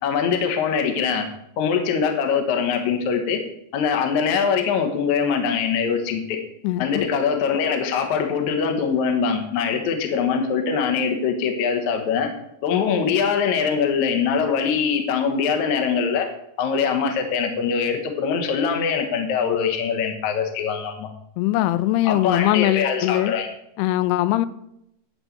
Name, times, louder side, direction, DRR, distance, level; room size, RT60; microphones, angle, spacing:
voice 1, 0.0-1.2 1.6-3.4 3.7-6.4 6.8-12.3 12.6-16.3 16.6-21.1 22.1-23.5, left 6 dB, 65° left, 4 dB, 2.1 m, -22 dB
voice 2, 6.6-7.1 21.4-23.3 23.8-24.5, left 15 dB, 85° left, 15 dB, 2.6 m, -21 dB
11.0 x 4.4 x 8.1 m, 0.78 s
omnidirectional pair, 4.8 m